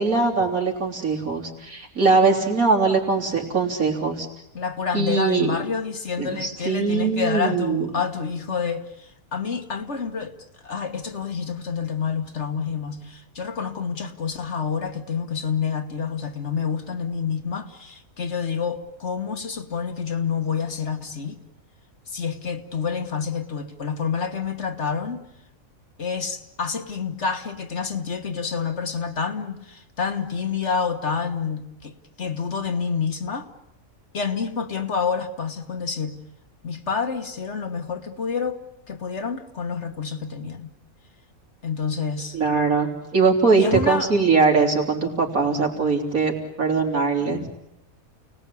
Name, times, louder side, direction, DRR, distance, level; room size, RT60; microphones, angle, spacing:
voice 1, 0.0-4.3 4.9-5.5 6.2-7.9 42.3-47.4, right 4 dB, 85° right, 1 dB, 4.0 m, -21 dB
voice 2, 4.5-10.4 10.6-21.4 22.1-25.2 26.0-33.5 34.1-36.2 36.6-40.7 41.6-42.4 43.6-44.1 47.2-47.5, left 6 dB, 55° left, 6 dB, 1.8 m, -28 dB
29.5 x 19.0 x 8.5 m, 0.87 s
omnidirectional pair, 1.4 m